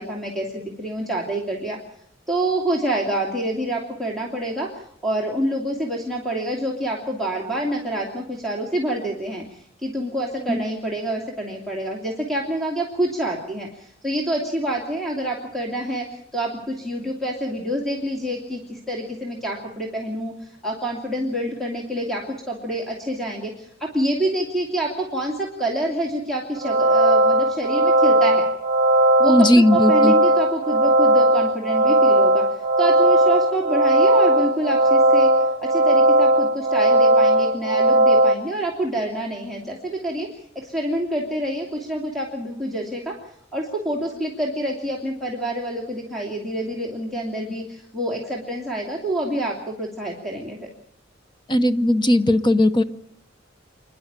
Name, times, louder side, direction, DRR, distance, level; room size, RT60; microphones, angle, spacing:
voice 1, 0.0-1.8 2.3-28.4 29.2-32.4 32.8-35.3 35.6-43.1 43.5-50.7, right 1 dB, ahead, -2 dB, 2.7 m, -27 dB
sound 1, 26.6-38.4, right 1 dB, 45° right, 1.4 m, -17 dB
voice 2, 29.3-30.1 51.5-52.8, left 1 dB, 25° left, 10 dB, 0.8 m, -17 dB
27.5 x 11.0 x 9.0 m, 0.72 s
head